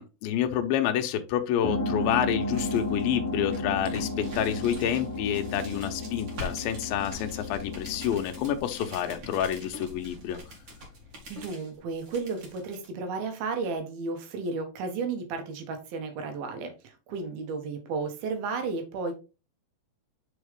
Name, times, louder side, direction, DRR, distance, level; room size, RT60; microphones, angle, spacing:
voice 1, 0.0-10.4, left 10 dB, 80° left, 2.4 m, -28 dB
sound 1, 1.6-9.8, left 2 dB, 40° left, 1.2 m, -33 dB
sound 2, 2.0-12.9, left 1 dB, 40° right, 1.9 m, -45 dB
voice 2, 11.3-19.1, right 4 dB, 75° right, 2.9 m, -33 dB
6.4 x 4.4 x 3.4 m
omnidirectional pair, 4.4 m